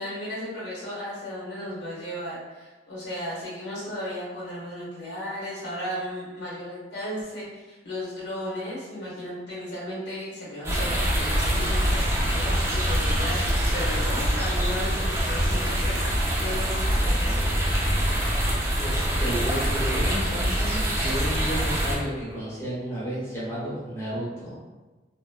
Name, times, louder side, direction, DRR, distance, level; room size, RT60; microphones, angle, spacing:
voice 1, 0.0-17.5, equal, 80° left, -6 dB, 1.2 m, -35 dB
sound 1, 10.6-22.0, equal, 15° right, 0.5 m, -24 dB
voice 2, 18.8-24.5, equal, 15° left, -9 dB, 0.8 m, -32 dB
2.9 x 2.1 x 2.2 m, 1.2 s
head